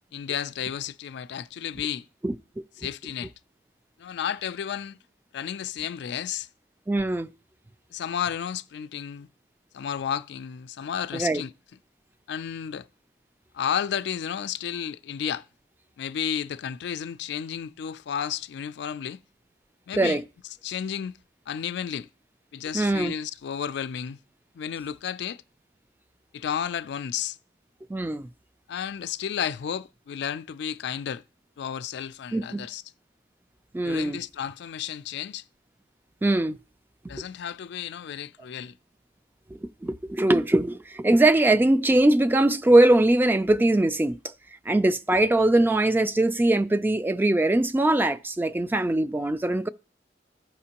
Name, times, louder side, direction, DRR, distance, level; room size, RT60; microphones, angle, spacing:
voice 1, 0.1-2.0 2.8-3.3 4.0-5.0 5.3-6.5 7.9-9.3 9.7-11.5 12.3-12.9 13.5-15.4 16.0-19.2 19.9-20.2 20.6-21.2 21.5-22.1 22.5-24.2 24.5-25.4 26.3-27.4 28.7-31.2 31.6-32.8 33.8-35.4 37.1-38.7, left 8 dB, 65° left, 0.4 m, -32 dB
voice 2, 6.9-7.3 11.1-11.4 19.9-20.2 22.7-23.1 27.9-28.3 32.3-32.7 33.7-34.2 36.2-36.6 39.5-44.3 44.7-49.7, right 2 dB, 10° right, 0.3 m, -21 dB
15.0 x 5.0 x 2.9 m
head